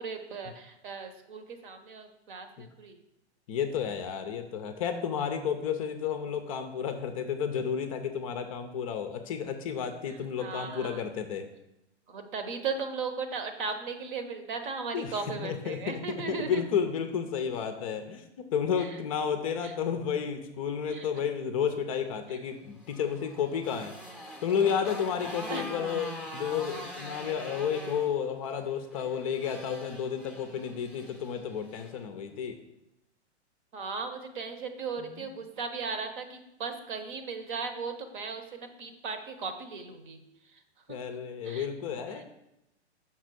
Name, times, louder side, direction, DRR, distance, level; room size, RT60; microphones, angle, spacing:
voice 1, 0.0-3.0 10.4-11.0 12.1-16.6 19.6-19.7 20.9-21.1 22.3-22.4 25.5-25.6 33.7-40.2 40.9-41.0 41.4-41.7 42.2-42.3, right 5 dB, 45° right, 7 dB, 0.9 m, -37 dB
voice 2, 3.5-11.4 14.9-24.0 24.4-32.6 35.0-35.3 40.9-42.2, left 7 dB, 30° left, 7 dB, 0.5 m, -32 dB
Motorcycle, 22.5-32.0, left 1 dB, ahead, 0.7 m, -44 dB
5.9 x 4.0 x 6.1 m, 0.88 s
figure-of-eight pair, 110°, 34 cm